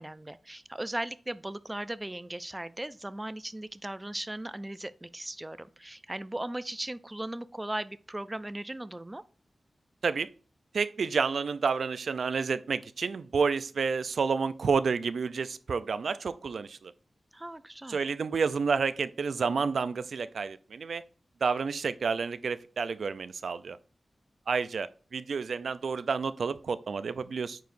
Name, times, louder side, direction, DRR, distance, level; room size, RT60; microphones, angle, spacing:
voice 1, 0.0-9.2 17.3-18.0, right 1 dB, 15° right, 14 dB, 0.3 m, -37 dB
voice 2, 10.7-16.9 17.9-21.0 21.4-23.8 24.5-27.6, right 5 dB, 80° right, 14 dB, 0.4 m, -30 dB
9.2 x 4.7 x 2.5 m, 0.40 s
wide cardioid pair, 125°, 0 cm